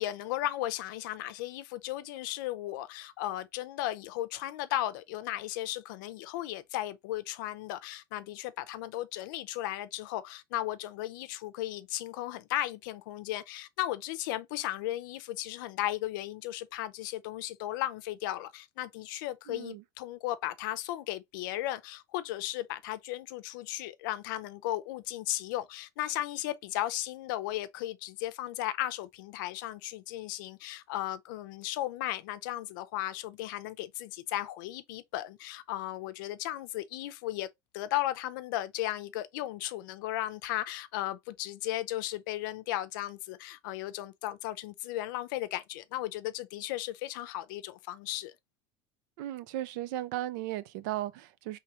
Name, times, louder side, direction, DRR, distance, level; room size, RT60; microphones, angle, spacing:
voice 1, 0.0-37.5 37.7-48.3, left 14 dB, 75° left, 0.6 m, -35 dB
voice 2, 19.5-19.8 49.2-51.6, right 14 dB, 65° right, 0.5 m, -36 dB
4.8 x 3.2 x 2.9 m
cardioid pair, 160°, 11 cm